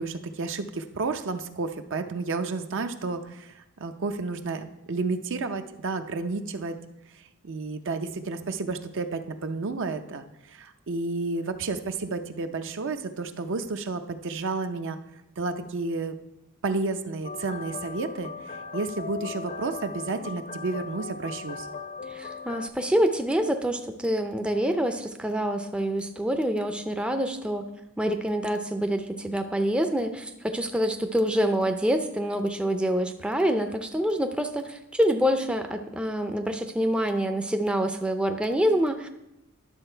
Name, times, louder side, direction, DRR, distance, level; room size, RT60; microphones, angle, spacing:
voice 1, 0.0-6.8 7.4-15.0 15.4-16.2 16.6-21.7, right 3 dB, 60° right, 8 dB, 0.6 m, -31 dB
sound 1, 17.2-22.7, left 5 dB, 40° left, 0.6 m, -38 dB
voice 2, 22.1-27.7 28.0-39.1, equal, 5° right, 5 dB, 0.5 m, -26 dB
11.0 x 6.6 x 4.4 m, 0.90 s
head